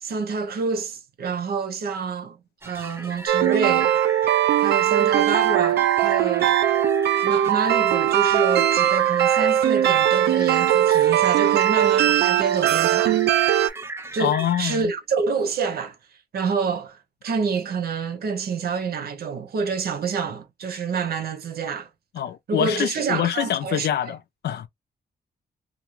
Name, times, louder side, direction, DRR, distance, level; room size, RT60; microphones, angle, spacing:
voice 1, 0.0-2.4 2.6-4.0 4.6-6.6 7.2-13.2 14.1-16.0 16.3-17.0 17.2-21.9 22.5-23.9, right 5 dB, 70° right, 0.8 m, -27 dB
sound 1, 2.6-14.8, right 2 dB, 15° right, 0.5 m, -37 dB
sound 2, 3.3-13.7, right 11 dB, 85° right, 0.4 m, -20 dB
voice 2, 14.2-14.9 22.1-24.7, left 10 dB, 80° left, 0.5 m, -25 dB
2.5 x 2.4 x 3.0 m
cardioid pair, 110°, 17 cm